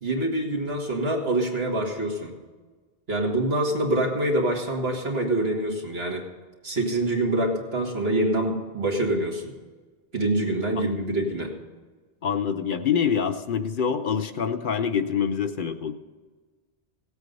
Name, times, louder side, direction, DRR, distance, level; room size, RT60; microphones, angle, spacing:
voice 1, 0.0-2.4 3.1-6.2 6.6-9.5 10.1-11.5, right 1 dB, 75° right, 1 dB, 2.3 m, -25 dB
voice 2, 12.2-15.9, left 7 dB, 60° left, 8 dB, 0.9 m, -25 dB
17.5 x 8.2 x 5.4 m, 1.4 s
omnidirectional pair, 1.0 m